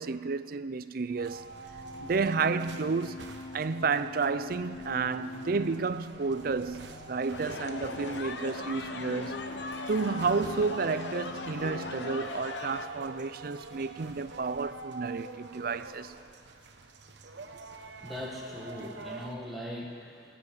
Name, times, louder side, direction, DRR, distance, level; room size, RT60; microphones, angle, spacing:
voice 1, 0.0-1.4 2.0-9.4 9.9-16.2, right 4 dB, 55° right, 0.5 m, -31 dB
sound 1, 1.1-12.2, left 2 dB, 30° left, 1.0 m, -45 dB
sound 2, 1.2-19.3, right 3 dB, 80° right, 1.0 m, -47 dB
sound 3, 7.3-12.9, left 3 dB, 90° left, 1.0 m, -39 dB
voice 2, 17.8-20.4, left 1 dB, ahead, 1.8 m, -40 dB
16.5 x 9.2 x 8.3 m
head